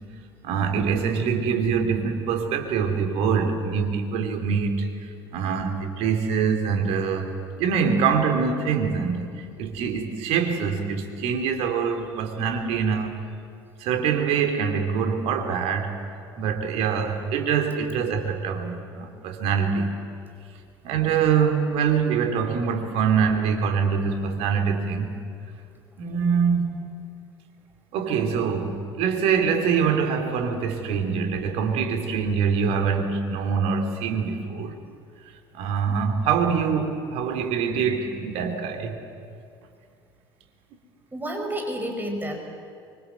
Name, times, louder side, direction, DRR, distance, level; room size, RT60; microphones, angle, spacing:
voice 1, 0.4-13.1 13.8-15.9 16.4-19.9 20.8-25.2 26.0-26.8 27.9-34.8 35.5-39.0, right 6 dB, 55° right, 4 dB, 3.0 m, -24 dB
voice 2, 41.1-42.4, right 1 dB, 15° right, 3 dB, 5.2 m, -31 dB
24.5 x 24.0 x 8.1 m, 2.3 s
figure-of-eight pair, 60°, 12 cm